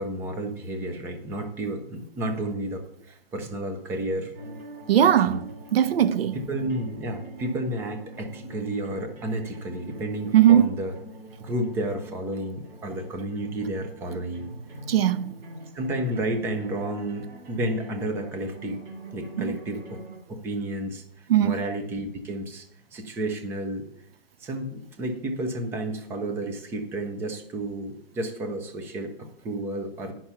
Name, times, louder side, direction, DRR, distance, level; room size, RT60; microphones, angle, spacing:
voice 1, 0.0-4.3 5.3-5.4 6.5-10.9 11.4-14.5 15.7-18.8 19.1-20.0 20.3-22.7 22.9-23.9 24.4-30.1, right 1 dB, 10° right, 0.6 m, -31 dB
sound 1, 4.3-20.2, right 2 dB, 55° right, 3.2 m, -44 dB
voice 2, 4.9-6.4 10.3-10.7 14.9-15.3 19.4-19.6 21.3-21.6, right 10 dB, 75° right, 0.5 m, -19 dB
10.0 x 5.9 x 5.6 m
hypercardioid pair, 150°, 30 cm